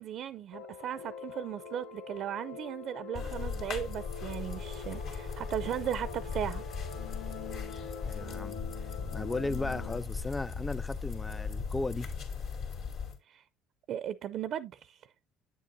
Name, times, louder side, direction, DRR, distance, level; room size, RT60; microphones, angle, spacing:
voice 1, 0.0-6.6 13.3-13.4 13.9-15.1, right 10 dB, 60° right, 0.4 m, -37 dB
sound 1, 0.5-10.0, left 6 dB, 85° left, 0.5 m, -45 dB
sound 2, 3.1-13.2, left 5 dB, 70° left, 2.5 m, -38 dB
Race car auto racing / Accelerating revving vroom, 3.8-9.1, left 3 dB, 45° left, 0.9 m, -52 dB
voice 2, 8.0-8.6 9.1-12.1, left 2 dB, 15° left, 0.4 m, -36 dB
8.4 x 7.6 x 2.5 m
supercardioid pair, 75°, 0 cm